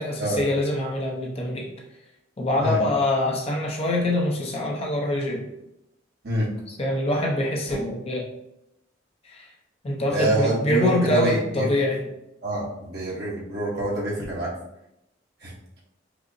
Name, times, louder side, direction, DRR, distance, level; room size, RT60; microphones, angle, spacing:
voice 1, 0.0-1.7 2.4-5.5 6.8-8.2 9.3-9.4 9.8-12.0, left 1 dB, 35° left, -1 dB, 0.6 m, -24 dB
voice 2, 10.1-11.7 12.4-14.5 15.4-15.5, right 1 dB, 60° right, -5 dB, 1.0 m, -26 dB
4.8 x 2.0 x 2.6 m, 0.84 s
head